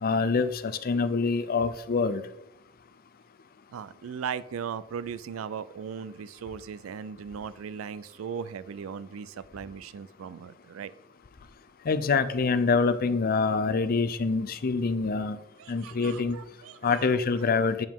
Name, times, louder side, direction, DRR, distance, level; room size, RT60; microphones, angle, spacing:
voice 1, 0.0-2.2 11.9-15.4 15.7-16.4 16.8-17.9, left 4 dB, 45° left, 11 dB, 0.5 m, -25 dB
voice 2, 3.7-10.9 15.6-17.1, right 7 dB, 75° right, 17 dB, 0.4 m, -38 dB
7.8 x 7.2 x 3.6 m, 0.83 s
head